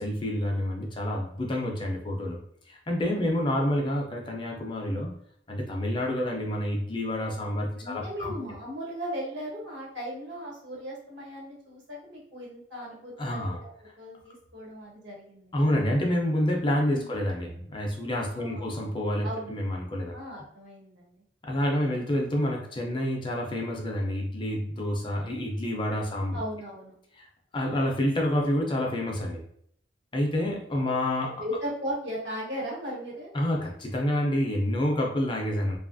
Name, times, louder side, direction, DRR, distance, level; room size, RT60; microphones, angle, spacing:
voice 1, 0.0-2.4 2.7-5.2 5.5-8.3 13.2-13.6 13.9-14.0 15.5-20.2 21.4-26.4 27.2-27.3 27.5-29.4 30.1-31.4 33.3-35.8, left 1 dB, 25° left, 0 dB, 0.4 m, -28 dB
voice 2, 7.8-13.7 14.0-15.5 16.9-17.1 18.3-18.7 19.2-19.5 20.1-21.2 26.3-26.9 31.2-33.3, equal, 75° right, -4 dB, 1.2 m, -37 dB
2.8 x 2.3 x 2.5 m, 0.67 s
head